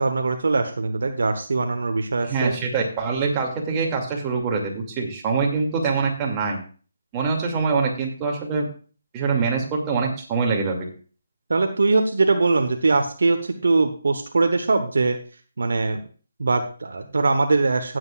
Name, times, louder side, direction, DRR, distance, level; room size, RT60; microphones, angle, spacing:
voice 1, 0.0-2.5 11.5-15.2 15.6-16.0 16.4-18.0, right 3 dB, 65° right, 6 dB, 1.1 m, -21 dB
voice 2, 2.2-6.6 7.1-8.7 9.1-10.9, right 4 dB, 20° right, -1 dB, 2.5 m, -24 dB
16.0 x 8.0 x 2.5 m, 0.39 s
figure-of-eight pair, 145°, 0 cm